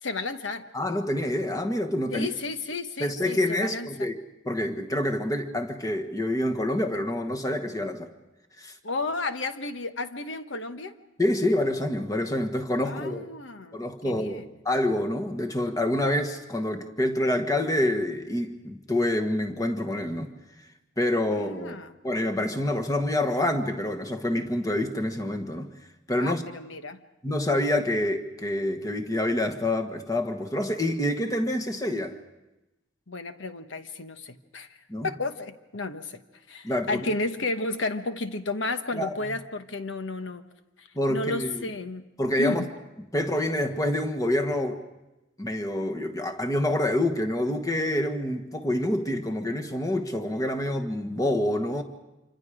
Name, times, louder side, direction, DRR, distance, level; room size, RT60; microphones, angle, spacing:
voice 1, 0.0-0.7 2.1-4.1 8.8-10.9 12.8-14.4 21.3-22.0 26.1-27.0 33.1-34.7 35.0-36.2 36.5-40.4 40.8-42.1 42.4-42.7, left 3 dB, 70° left, 1.2 m, -33 dB
voice 2, 0.7-2.3 3.0-4.2 4.4-8.1 8.6-8.7 11.2-13.2 13.7-20.3 21.0-21.8 22.0-25.7 26.1-26.4 27.2-32.2 34.9-35.1 36.6-37.0 38.9-39.2 40.9-41.7 42.2-42.6 43.1-44.8 45.4-51.8, left 1 dB, 15° left, 1.4 m, -27 dB
27.0 x 25.5 x 5.0 m
head